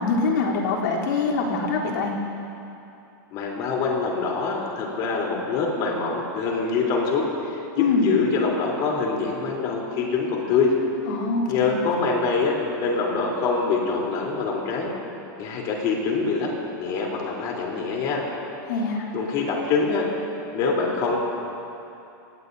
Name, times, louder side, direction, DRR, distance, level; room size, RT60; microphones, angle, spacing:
voice 1, 0.0-2.1 7.8-8.1 11.1-11.8 18.7-19.1, left 4 dB, 75° left, -3 dB, 3.6 m, -24 dB
voice 2, 3.3-10.7 11.5-14.9 15.4-16.5 16.8-18.2 19.1-20.0 20.5-21.2, left 4 dB, 40° left, -2 dB, 3.7 m, -25 dB
25.5 x 19.0 x 2.8 m, 2.8 s
supercardioid pair, 155°, 11 cm